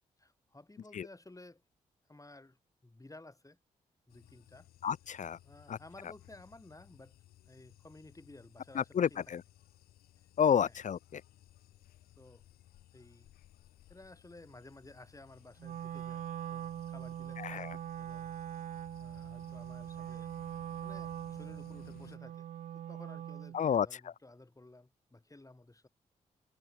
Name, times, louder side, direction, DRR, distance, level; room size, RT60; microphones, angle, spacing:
voice 1, 0.2-1.6 2.1-3.6 4.1-4.7 5.4-7.2 7.4-9.2 10.6-10.8 12.2-12.4 12.9-13.3 13.9-18.4 19.0-20.3 20.8-22.5 22.7-25.9, left 2 dB, 20° left, 7.8 m, -55 dB
sound 1, 4.1-22.2, left 14 dB, 80° left, 2.8 m, -60 dB
voice 2, 4.8-5.4 5.7-5.8 8.7-9.4 10.4-11.2 17.4-17.8 23.5-23.9, left 8 dB, 55° left, 0.6 m, -30 dB
Wind instrument woodwind instrument, 15.6-23.6, right 10 dB, 60° right, 0.4 m, -42 dB
hypercardioid pair, 40°, 16 cm